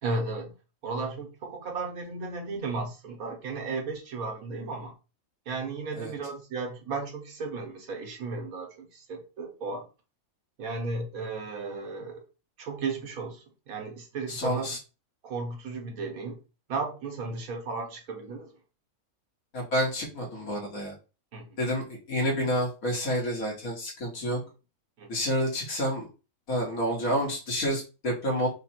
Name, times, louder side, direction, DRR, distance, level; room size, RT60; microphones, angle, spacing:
voice 1, 0.0-0.5 0.8-4.9 5.4-9.9 10.6-12.2 12.6-14.8 15.2-16.4 16.7-18.5 21.3-21.6 24.2-24.4 25.0-25.1, right 3 dB, 75° right, 1.5 m, -35 dB
voice 2, 14.3-14.8 19.5-21.0 21.6-24.4 25.1-26.1 26.5-28.5, equal, 70° left, 2.1 m, -29 dB
4.4 x 2.5 x 4.4 m
omnidirectional pair, 1.5 m